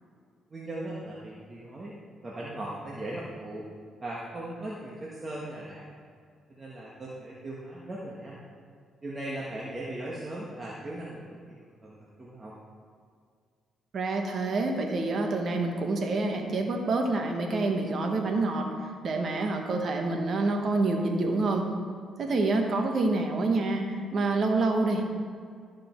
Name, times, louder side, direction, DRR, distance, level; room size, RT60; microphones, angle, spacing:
voice 1, 0.5-2.0 2.2-3.7 4.0-5.9 6.5-8.4 9.0-12.5, right 1 dB, 30° right, -5 dB, 1.5 m, -38 dB
voice 2, 13.9-18.7 19.0-21.7 22.2-25.0, right 2 dB, 50° right, 3 dB, 1.4 m, -27 dB
13.5 x 5.2 x 4.5 m, 2.1 s
cardioid pair, 90°, 0 cm